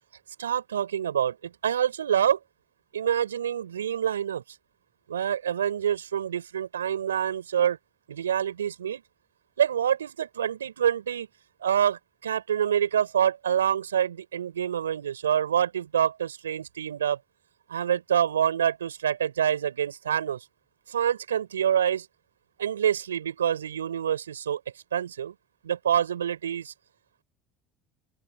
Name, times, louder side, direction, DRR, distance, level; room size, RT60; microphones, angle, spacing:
voice 1, 0.4-2.4 2.9-4.4 5.1-7.8 8.1-9.0 9.6-11.3 11.6-17.2 17.7-20.4 20.9-22.1 22.6-24.6 24.9-25.3 25.6-26.7, right 9 dB, 85° right, 6.5 m, -26 dB
open air
hypercardioid pair, 65°, 0 cm